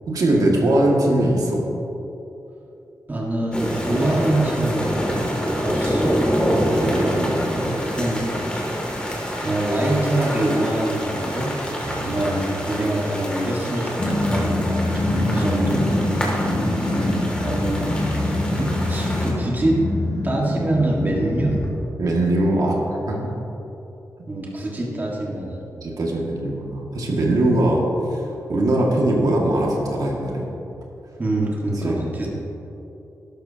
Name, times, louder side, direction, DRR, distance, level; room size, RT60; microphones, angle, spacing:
voice 1, 0.1-1.6 6.5-7.8 11.8-12.3 16.5-17.3 22.0-22.8 23.1-23.2 25.8-27.8 28.1-28.2 28.5-30.5 31.8-32.0, right 1 dB, 70° right, -2 dB, 2.0 m, -21 dB
voice 2, 3.1-4.9 5.6-6.2 6.8-7.1 7.9-8.2 9.4-11.5 12.0-15.9 17.4-18.1 18.5-19.8 20.2-21.6 24.3-25.6 31.2-32.3, right 1 dB, 30° right, -3 dB, 1.7 m, -24 dB
sound 1, 3.5-19.3, equal, 15° left, 2.4 m, -26 dB
Growling, 14.0-21.7, left 1 dB, 50° left, 2.4 m, -24 dB
12.0 x 12.0 x 2.8 m, 3.0 s
wide cardioid pair, 90°, 6 cm